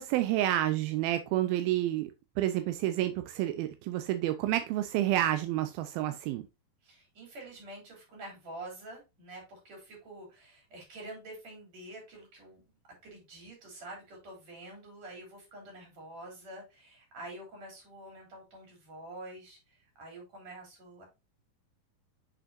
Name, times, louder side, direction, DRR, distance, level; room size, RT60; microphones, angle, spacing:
voice 1, 0.0-2.1 2.4-6.5, right 13 dB, 85° right, 2.5 m, -29 dB
voice 2, 6.8-12.6 13.0-21.0, right 1 dB, 45° right, 5.4 m, -47 dB
7.9 x 6.2 x 2.6 m
omnidirectional pair, 4.1 m